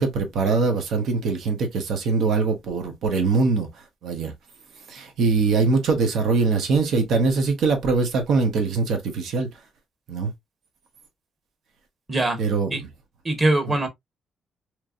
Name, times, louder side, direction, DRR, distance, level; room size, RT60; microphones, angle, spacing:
voice 1, 0.0-3.7 4.0-4.3 4.9-9.5 10.1-10.3 12.4-12.7, right 4 dB, 75° right, 1.1 m, -22 dB
voice 2, 12.1-12.4 12.7-12.8 13.2-13.9, right 2 dB, 30° right, 1.5 m, -22 dB
3.1 x 3.0 x 2.5 m
cardioid pair, 90°, 0 cm